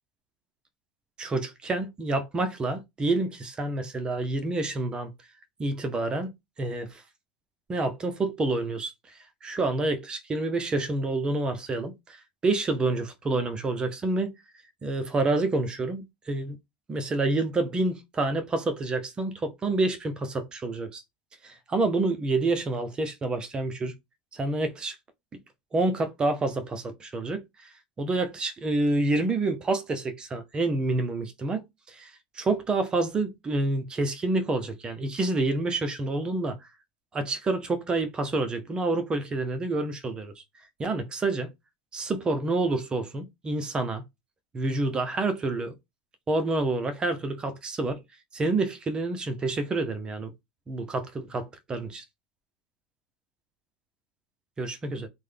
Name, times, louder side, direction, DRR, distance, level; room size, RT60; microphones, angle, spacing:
voice 1, 1.2-5.1 5.6-6.3 6.6-7.0 7.7-14.3 14.8-16.6 16.9-21.0 21.4-23.9 24.3-25.0 25.7-27.7 28.0-32.1 32.4-36.7 37.1-40.4 40.8-41.5 41.9-44.0 44.5-45.7 46.3-48.0 48.3-50.3 50.7-52.0 54.6-55.1, right 2 dB, 20° right, 0.6 m, -28 dB
3.6 x 2.1 x 3.2 m
supercardioid pair, 135°, 4 cm